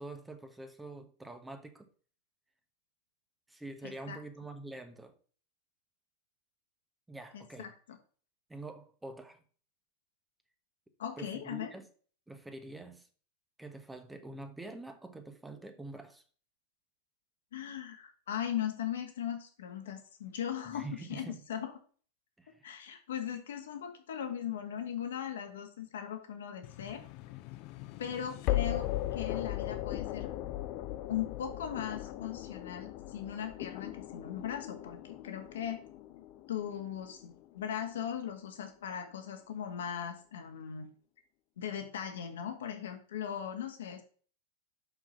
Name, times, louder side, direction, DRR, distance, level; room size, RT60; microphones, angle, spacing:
voice 1, 0.0-1.9 3.5-5.1 7.1-7.7 8.5-9.4 11.2-11.9 12.3-13.1 13.6-16.2 20.7-21.4 22.4-22.7, right 2 dB, 5° right, 1.2 m, -46 dB
voice 2, 3.8-4.2 7.3-8.0 11.0-11.7 17.5-21.7 22.6-27.0 28.0-30.3 31.1-35.8 36.5-40.9 41.6-44.0, left 9 dB, 60° left, 1.7 m, -39 dB
sound 1, 26.6-37.7, left 15 dB, 45° left, 0.6 m, -38 dB
6.5 x 6.0 x 5.5 m
figure-of-eight pair, 90°, 0 cm